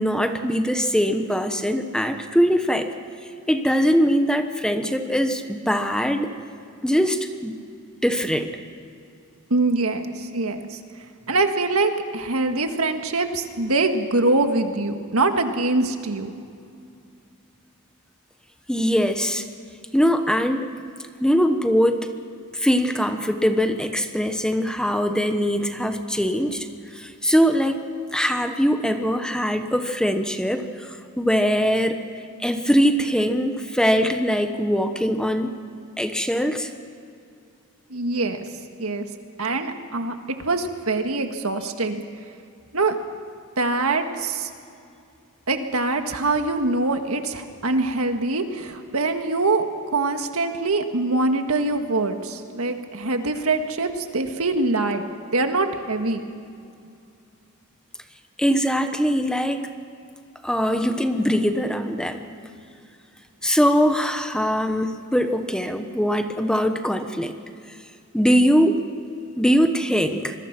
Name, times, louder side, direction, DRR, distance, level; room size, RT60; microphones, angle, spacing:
voice 1, 0.0-2.9 3.5-6.3 6.8-7.5 8.0-8.5 18.7-19.5 19.9-20.7 21.2-22.1 22.5-26.7 26.9-27.8 28.1-32.0 32.4-35.5 36.0-36.7 58.4-59.7 60.4-62.3 63.4-67.3 68.1-68.8 69.4-70.3, equal, 5° left, 7 dB, 1.1 m, -22 dB
voice 2, 9.5-10.8 11.3-16.3 37.9-38.4 38.8-39.1 39.4-42.0 42.7-43.0 43.6-44.5 45.5-49.6 49.9-55.1 55.3-56.2, right 2 dB, 75° right, 6 dB, 1.8 m, -24 dB
26.0 x 22.0 x 6.1 m, 2.4 s
head